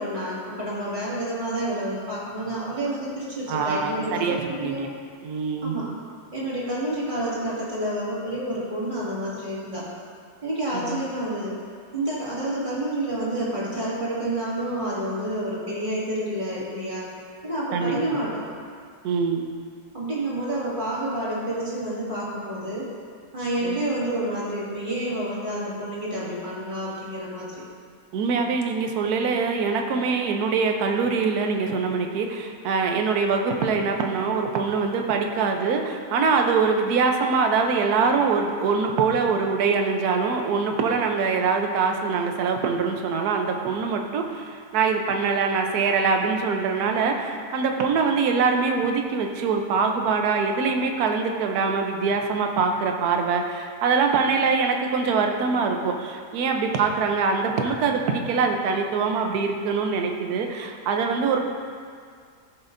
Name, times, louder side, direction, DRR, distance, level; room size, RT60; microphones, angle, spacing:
voice 1, 0.0-4.9 5.6-5.9 6.3-9.9 10.4-11.6 11.9-17.1 17.4-18.4 19.9-22.9 23.3-27.5, right 1 dB, 30° right, -8 dB, 2.3 m, -29 dB
voice 2, 3.5-4.9 5.2-5.8 10.8-11.0 17.7-18.2 19.0-19.5 23.6-23.8 28.1-61.5, right 5 dB, 70° right, 3 dB, 1.2 m, -23 dB
15.0 x 6.2 x 2.6 m, 2.1 s
omnidirectional pair, 1.8 m